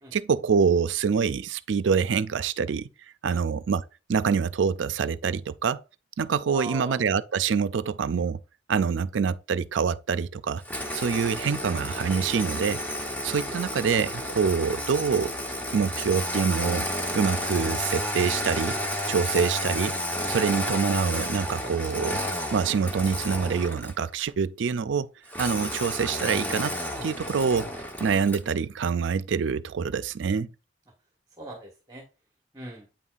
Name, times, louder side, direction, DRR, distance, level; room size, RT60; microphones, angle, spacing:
voice 1, 0.1-2.9 3.2-3.8 4.1-5.8 6.2-8.4 8.7-10.6 10.9-12.8 13.2-15.3 15.7-16.9 17.1-18.8 19.1-19.9 20.3-22.2 22.5-25.1 25.4-26.7 27.0-27.7 28.0-30.5, right 6 dB, 85° right, 0.4 m, -25 dB
voice 2, 6.5-7.0 19.2-19.3 31.4-32.0 32.5-32.9, right 2 dB, 20° right, 1.4 m, -40 dB
Engine starting, 10.6-24.1 25.3-28.5, left 1 dB, 10° left, 1.0 m, -31 dB
8.7 x 5.5 x 2.5 m
head